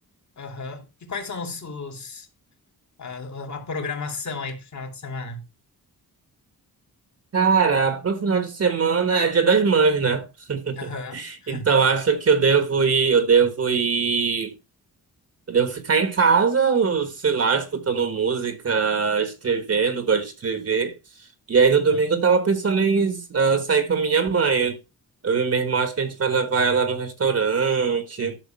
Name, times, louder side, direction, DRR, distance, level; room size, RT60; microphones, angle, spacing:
voice 1, 0.4-2.3 3.0-5.4 10.7-11.8, left 4 dB, 50° left, 3.0 m, -34 dB
voice 2, 7.3-14.5 15.5-21.0 21.5-24.8 25.2-28.4, right 5 dB, 40° right, 1.5 m, -21 dB
12.0 x 6.6 x 4.4 m
wide cardioid pair, 145°, 36 cm